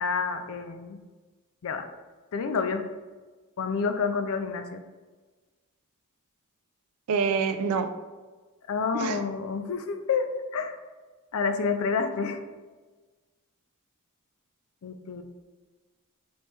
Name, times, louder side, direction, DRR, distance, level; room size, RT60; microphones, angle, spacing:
voice 1, 0.0-1.0 1.6-1.9 2.3-2.8 3.6-4.8 8.7-10.3 10.5-10.8 11.3-12.4 14.8-15.2, left 5 dB, 65° left, 8 dB, 0.4 m, -28 dB
voice 2, 7.1-7.9 8.9-9.2, right 5 dB, 85° right, 9 dB, 0.4 m, -26 dB
4.5 x 3.0 x 3.3 m, 1.3 s
head